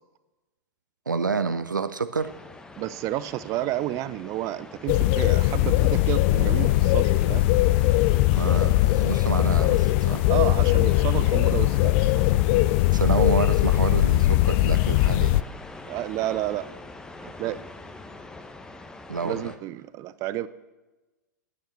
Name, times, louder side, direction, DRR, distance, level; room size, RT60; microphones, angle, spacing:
voice 1, 1.1-2.3 8.3-10.2 12.9-15.4 19.1-19.5, right 5 dB, 85° right, 12 dB, 0.5 m, -28 dB
sound 1, 2.2-19.6, left 2 dB, 5° left, 0.9 m, -44 dB
voice 2, 2.8-7.5 10.3-12.2 15.9-16.7 17.2-17.6 19.2-20.5, right 14 dB, 30° right, 16 dB, 0.5 m, -31 dB
sound 2, 4.9-15.4, left 16 dB, 40° left, 0.3 m, -20 dB
9.4 x 9.0 x 7.0 m, 1.2 s
figure-of-eight pair, 105°, 10 cm